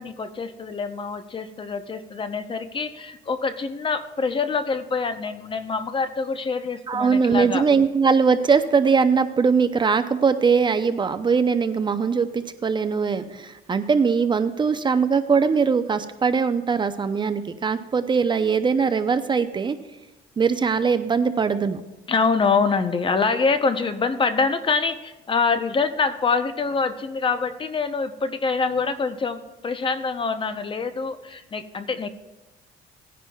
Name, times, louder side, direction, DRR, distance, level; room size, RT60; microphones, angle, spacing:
voice 1, 0.0-7.6 22.1-32.1, left 4 dB, 30° left, 10 dB, 0.7 m, -25 dB
voice 2, 6.9-19.8 20.4-21.8, right 5 dB, 25° right, 10 dB, 0.6 m, -21 dB
18.0 x 10.0 x 2.3 m, 1.1 s
cardioid pair, 110°, 17 cm